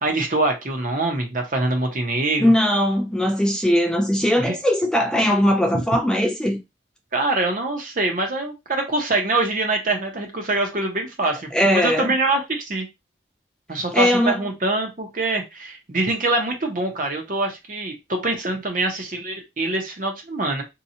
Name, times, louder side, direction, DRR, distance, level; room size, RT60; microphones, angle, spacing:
voice 1, 0.0-2.4 4.4-4.5 5.7-5.8 7.1-12.9 13.7-20.6, right 2 dB, 45° right, 0.8 m, -24 dB
voice 2, 2.4-6.6 11.2-12.1 13.9-14.4, equal, 5° left, 0.3 m, -20 dB
2.8 x 2.3 x 2.7 m
head